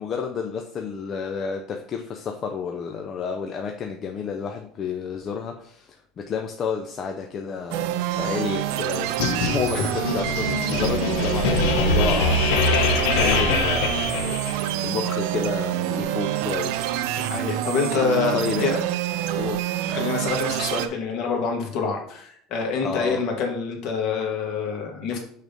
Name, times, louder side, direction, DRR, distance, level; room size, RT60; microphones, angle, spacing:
voice 1, 0.0-17.1 18.3-18.7 19.4-19.6 22.8-23.2, left 6 dB, 30° left, 4 dB, 0.5 m, -31 dB
sound 1, 7.7-20.9, right 12 dB, 70° right, 0.5 m, -27 dB
sound 2, 9.2-14.8, left 4 dB, 85° left, 0.9 m, -23 dB
voice 2, 17.1-18.8 19.9-25.2, left 5 dB, 50° left, 1 dB, 1.7 m, -26 dB
6.5 x 3.5 x 5.3 m, 0.65 s
cardioid pair, 160°, 0 cm